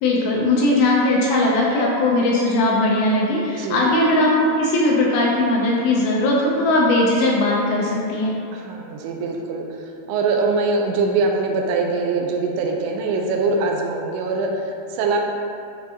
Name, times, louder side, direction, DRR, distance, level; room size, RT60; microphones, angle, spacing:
voice 1, 0.0-8.3, left 2 dB, 75° left, -3 dB, 2.4 m, -19 dB
voice 2, 8.5-15.2, right 3 dB, 80° right, 1 dB, 2.6 m, -23 dB
9.6 x 3.8 x 2.8 m, 2.4 s
omnidirectional pair, 4.7 m